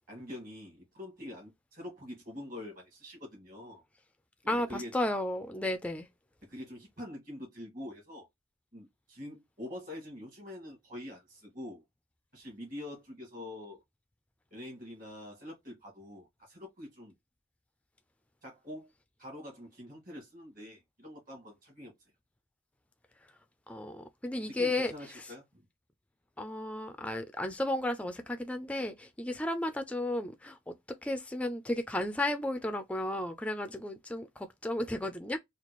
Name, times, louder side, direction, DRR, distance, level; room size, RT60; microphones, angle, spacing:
voice 1, 0.1-3.8 4.4-4.9 6.4-8.3 8.7-11.8 12.3-13.8 14.5-17.1 18.4-18.9 19.2-21.9 24.4-25.4, left 1 dB, 40° right, 1.9 m, -45 dB
voice 2, 4.5-6.1 23.7-25.2 26.4-35.4, left 1 dB, 5° left, 0.3 m, -34 dB
4.2 x 2.4 x 3.0 m
head